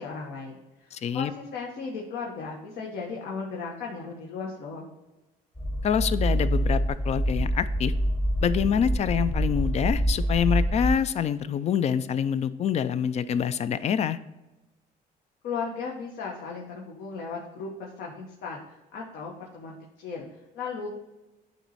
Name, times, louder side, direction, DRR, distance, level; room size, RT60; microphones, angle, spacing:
voice 1, 0.0-4.9 15.4-20.3 20.5-20.9, left 5 dB, 75° left, -2 dB, 1.2 m, -36 dB
voice 2, 0.9-1.3 5.8-7.9 8.4-14.2, left 8 dB, 40° left, 14 dB, 0.4 m, -26 dB
sound 1, 5.6-10.9, equal, 15° left, 1.0 m, -26 dB
9.1 x 3.1 x 4.1 m, 1.0 s
cardioid pair, 110°, 17 cm